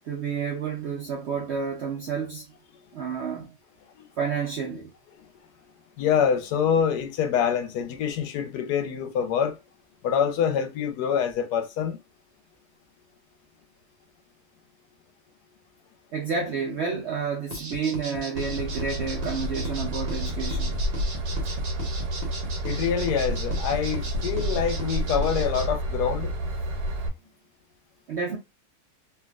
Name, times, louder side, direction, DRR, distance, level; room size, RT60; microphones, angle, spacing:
voice 1, 0.0-2.5 2.9-3.5 4.2-4.9 16.1-20.8 28.1-28.4, right 5 dB, 65° right, 0.7 m, -30 dB
voice 2, 6.0-9.6 10.0-12.0 22.6-26.3, left 8 dB, 80° left, 1.2 m, -25 dB
sound 1, 17.5-25.6, right 2 dB, 45° right, 1.0 m, -37 dB
Train / Engine, 18.4-27.1, right 1 dB, 90° right, 1.3 m, -30 dB
3.4 x 2.6 x 2.3 m
omnidirectional pair, 1.7 m